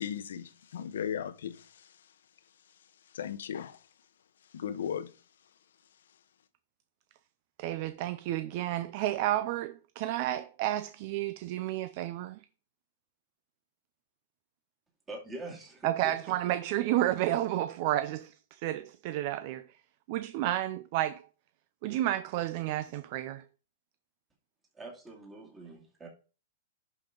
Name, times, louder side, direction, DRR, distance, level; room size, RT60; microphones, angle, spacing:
voice 1, 0.0-2.1 3.1-3.9 4.5-5.1, left 8 dB, 80° left, 0.9 m, -37 dB
voice 2, 7.6-12.4 15.8-19.7 20.1-21.2 21.8-23.4, right 14 dB, 45° right, 0.5 m, -31 dB
voice 3, 15.1-16.1 24.7-26.1, right 2 dB, 15° right, 2.6 m, -44 dB
11.0 x 5.2 x 3.9 m
hypercardioid pair, 155°, 0 cm